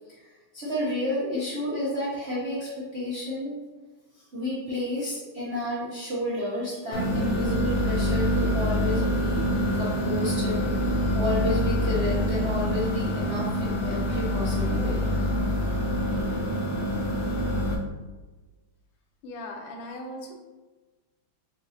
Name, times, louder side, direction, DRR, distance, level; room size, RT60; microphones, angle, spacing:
voice 1, 0.1-3.6 4.1-9.5 9.7-15.1, left 1 dB, 65° right, -7 dB, 0.6 m, -31 dB
sound 1, 6.9-17.7, left 1 dB, 70° left, 1.5 m, -26 dB
voice 2, 19.2-20.3, left 1 dB, 90° left, 2 dB, 1.7 m, -38 dB
6.9 x 2.5 x 2.7 m, 1.3 s
omnidirectional pair, 2.3 m